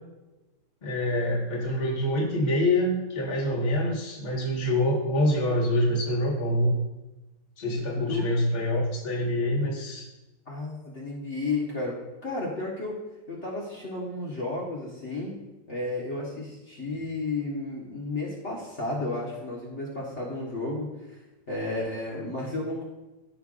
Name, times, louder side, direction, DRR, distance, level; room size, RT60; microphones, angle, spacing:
voice 1, 0.8-6.8 7.6-10.0, left 1 dB, 25° left, -3 dB, 1.6 m, -26 dB
voice 2, 10.5-13.0 13.3-15.3 15.7-20.9 21.5-22.8, left 2 dB, 40° left, -5 dB, 1.7 m, -32 dB
14.5 x 5.7 x 2.5 m, 1.1 s
omnidirectional pair, 2.0 m